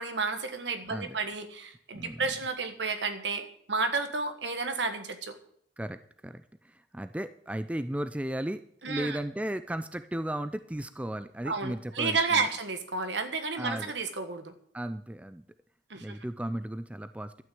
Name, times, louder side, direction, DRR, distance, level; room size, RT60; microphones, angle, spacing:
voice 1, 0.0-5.4 8.8-9.2 11.4-14.5 15.9-16.2, right 4 dB, 70° right, 8 dB, 1.5 m, -31 dB
voice 2, 5.8-12.5 13.6-13.9 14.7-15.5 16.0-17.4, right 1 dB, 5° right, 11 dB, 0.4 m, -35 dB
12.0 x 6.4 x 8.6 m, 0.64 s
head